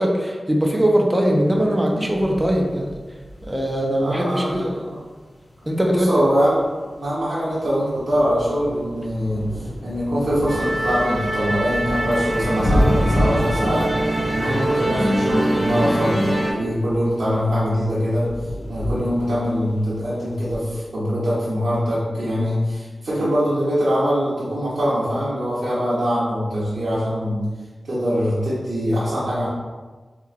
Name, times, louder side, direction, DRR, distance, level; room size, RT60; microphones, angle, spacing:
voice 1, 0.0-2.9 3.4-4.7 5.7-6.1, equal, 15° right, 0 dB, 0.6 m, -20 dB
sound 1, 1.3-20.6, equal, 50° left, 1.3 m, -30 dB
voice 2, 4.0-5.0 5.9-6.6 7.0-9.5 9.8-13.8 14.3-18.3 18.7-27.5 27.9-29.5, equal, 75° right, -11 dB, 1.0 m, -23 dB
Musical instrument, 10.5-16.5, right 1 dB, 40° right, 1.0 m, -23 dB
4.4 x 2.4 x 2.5 m, 1.3 s
cardioid pair, 50°, 0 cm